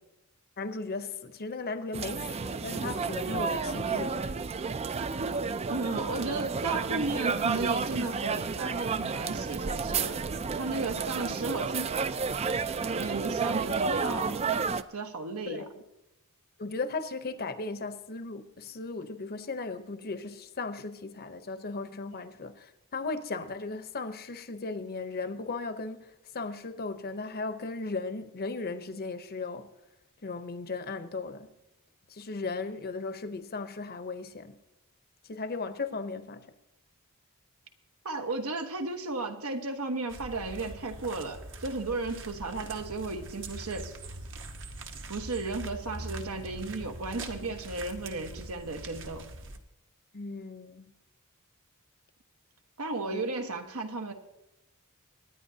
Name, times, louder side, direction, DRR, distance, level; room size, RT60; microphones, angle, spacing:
voice 1, 0.6-4.4 15.5-15.7 16.6-29.7 30.2-31.5 32.1-34.6 35.3-36.4 50.1-50.8 53.1-53.2, left 3 dB, 45° left, 0.8 m, -36 dB
sound 1, 1.9-14.8, right 5 dB, 30° right, 0.4 m, -31 dB
voice 2, 5.7-12.0 12.9-14.5 14.9-15.7 38.0-43.9 45.1-49.2 52.8-54.1, right 3 dB, 80° right, 1.3 m, -34 dB
sound 2, 40.1-49.6, right 2 dB, 60° right, 1.1 m, -43 dB
25.5 x 10.0 x 2.8 m
head